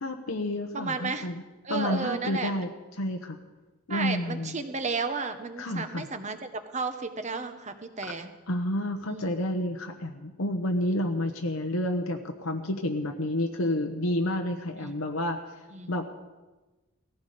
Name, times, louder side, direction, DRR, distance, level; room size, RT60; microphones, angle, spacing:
voice 1, 0.0-1.4 1.7-2.7 3.0-3.4 3.9-4.5 5.6-6.1 8.5-15.4 15.9-16.1, left 1 dB, 80° left, 3 dB, 1.1 m, -30 dB
voice 2, 0.7-1.3 1.6-2.6 3.9-8.3 9.1-9.3 14.8-14.9 15.7-16.0, right 4 dB, 35° right, 8 dB, 1.1 m, -33 dB
18.0 x 15.0 x 5.1 m, 1.2 s
head